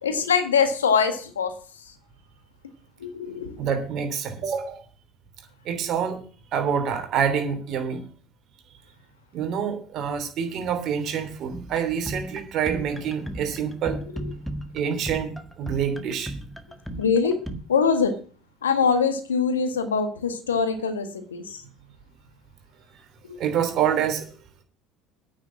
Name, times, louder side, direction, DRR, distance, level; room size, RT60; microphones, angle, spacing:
voice 1, 0.0-1.5 3.0-3.6 17.0-17.4 17.7-18.1 18.6-21.6 23.3-23.4, left 6 dB, 85° left, 8 dB, 1.7 m, -23 dB
voice 2, 3.6-4.8 5.6-6.2 6.5-8.0 9.3-14.0 14.7-16.3 23.4-24.3, right 7 dB, 50° right, 6 dB, 3.2 m, -27 dB
sound 1, 11.5-17.6, right 1 dB, ahead, 1.7 m, -36 dB
9.3 x 6.8 x 8.7 m, 0.42 s
hypercardioid pair, 70°, 0 cm